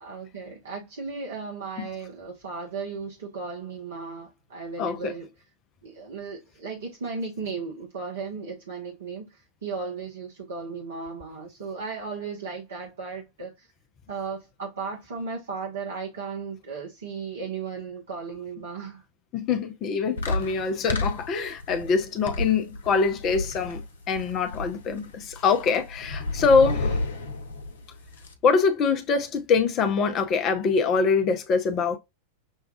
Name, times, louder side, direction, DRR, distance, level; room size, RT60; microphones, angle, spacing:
voice 1, 0.0-5.3 5.8-13.7 14.1-19.0, right 4 dB, 65° right, 0.9 m, -35 dB
voice 2, 4.8-5.1 19.3-27.0 28.4-32.0, left 5 dB, 35° left, 0.6 m, -24 dB
sound 1, 20.2-28.3, left 2 dB, 65° left, 0.8 m, -31 dB
6.3 x 2.3 x 2.3 m
figure-of-eight pair, 90°, 0 cm